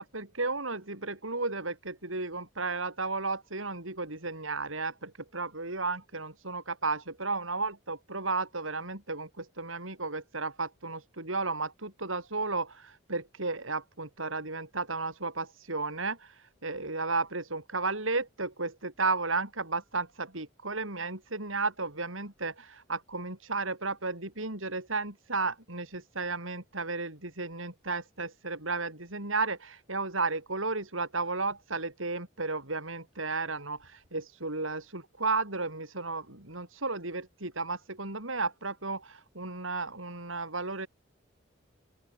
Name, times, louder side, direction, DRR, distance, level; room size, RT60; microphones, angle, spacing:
voice 1, 0.0-40.9, right 3 dB, 85° right, 6.4 m, -33 dB
open air
head